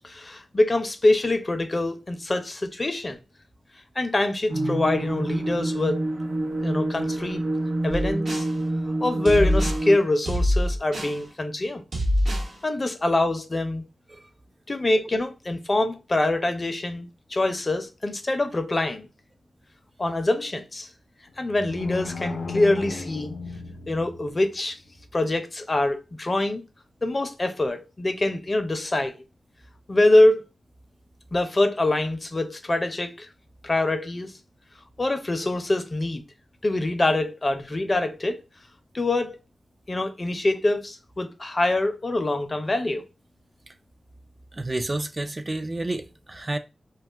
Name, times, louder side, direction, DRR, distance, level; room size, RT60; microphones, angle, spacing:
voice 1, 0.0-3.2 4.0-6.0 6.6-7.4 7.8-8.4 9.0-11.8 12.6-13.8 14.7-19.1 20.0-20.9 21.4-23.3 23.9-24.8 25.1-26.6 27.0-29.2 29.9-30.4 31.3-33.3 33.6-34.3 35.0-36.2 36.6-38.4 38.9-39.4 39.9-43.0, left 2 dB, 40° left, 0.5 m, -24 dB
sound 1, 4.5-10.0, right 1 dB, 90° right, 0.5 m, -27 dB
sound 2, 7.9-8.5 9.3-9.8 10.3-11.2 11.9-12.5, equal, 70° right, 1.0 m, -24 dB
sound 3, 21.3-24.5, left 4 dB, 80° left, 0.6 m, -35 dB
voice 2, 44.5-46.6, right 2 dB, 35° right, 0.3 m, -30 dB
2.3 x 2.3 x 3.3 m
cardioid pair, 55°, 0 cm